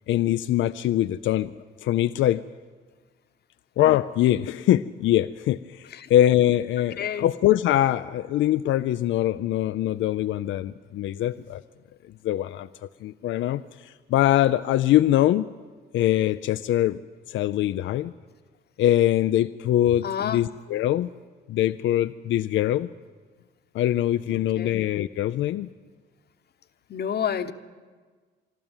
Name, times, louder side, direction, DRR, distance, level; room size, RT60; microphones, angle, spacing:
voice 1, 0.1-1.5 1.8-2.4 3.8-11.6 12.2-12.7 13.0-15.5 15.9-17.0 17.3-18.1 18.8-21.1 21.5-22.9 23.7-25.7, left 13 dB, 75° left, 13 dB, 0.5 m, -23 dB
voice 2, 7.0-7.3 20.0-20.4 24.3-24.7 26.9-27.5, left 8 dB, 55° left, 10 dB, 1.1 m, -29 dB
25.5 x 12.5 x 8.9 m, 1.5 s
cardioid pair, 90°, 20 cm